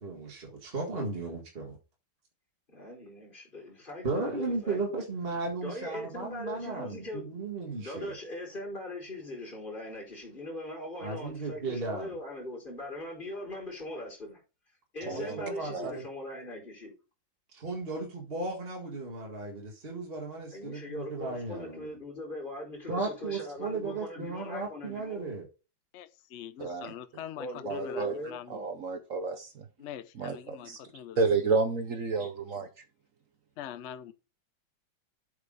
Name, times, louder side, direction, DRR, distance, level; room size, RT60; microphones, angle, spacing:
voice 1, 0.0-1.8 4.0-8.1 11.0-12.1 15.0-16.0 17.5-21.9 22.9-25.4, right 3 dB, 30° right, 1.8 m, -35 dB
voice 2, 2.7-5.0 5.6-7.3 7.7-14.4 14.9-16.9 20.5-25.3 27.4-28.4, left 1 dB, 25° left, 4.2 m, -40 dB
voice 3, 15.1-15.9 26.6-26.9 27.6-28.1 28.5-29.6 30.2-30.8 31.2-32.7, right 4 dB, 55° right, 1.0 m, -31 dB
voice 4, 25.9-28.7 29.8-31.3 32.2-32.3 33.6-34.1, left 10 dB, 65° left, 0.7 m, -43 dB
8.2 x 5.0 x 5.4 m
omnidirectional pair, 2.1 m